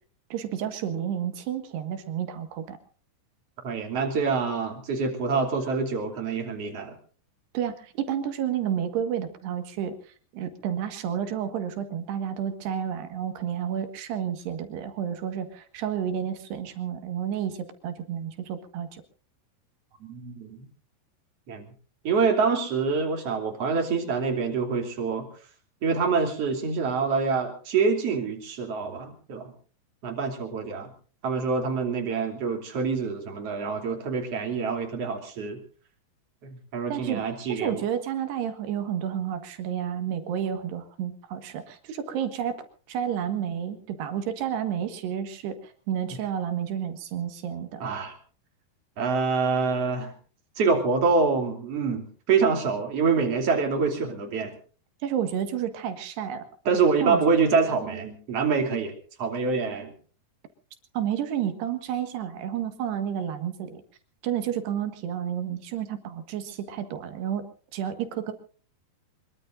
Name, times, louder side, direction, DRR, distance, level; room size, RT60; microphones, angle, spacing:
voice 1, 0.3-2.8 7.5-10.0 10.3-19.0 36.9-42.5 42.9-47.8 55.0-56.5 57.0-57.2 60.9-63.8 64.2-67.5 67.7-68.3, right 9 dB, 80° right, 8 dB, 3.8 m, -30 dB
voice 2, 3.6-6.9 20.0-20.6 21.5-21.7 22.0-25.3 25.8-29.5 30.0-30.9 31.2-35.6 36.4-37.8 47.8-48.1 49.0-50.1 50.6-54.5 56.7-58.9 59.2-59.9, right 5 dB, 40° right, 3 dB, 3.7 m, -26 dB
24.5 x 22.5 x 2.6 m, 0.41 s
omnidirectional pair, 4.7 m